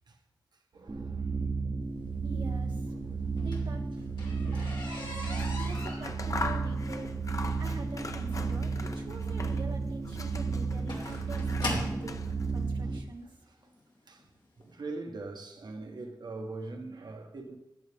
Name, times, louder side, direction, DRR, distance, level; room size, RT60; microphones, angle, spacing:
voice 1, 0.7-1.3 2.9-3.3 4.4-6.3 11.7-11.9 12.8-12.9 13.2-13.6 14.1-14.3 14.6-17.6, right 3 dB, 70° right, 1.2 m, -43 dB
sound 1, 0.9-13.0, right 4 dB, 50° right, 1.0 m, -33 dB
voice 2, 2.2-2.9 3.4-4.1 5.6-7.1 7.6-13.3, right 3 dB, 90° right, 1.1 m, -45 dB
sound 2, 3.2-12.1 13.0-13.1 13.7-13.9 14.2-14.3 14.6-14.7, left 2 dB, 80° left, 2.5 m, -40 dB
Scissors, 5.2-9.8 10.0-12.6, left 3 dB, 45° left, 0.8 m, -42 dB
14.0 x 9.4 x 3.5 m
wide cardioid pair, 95°, 8 cm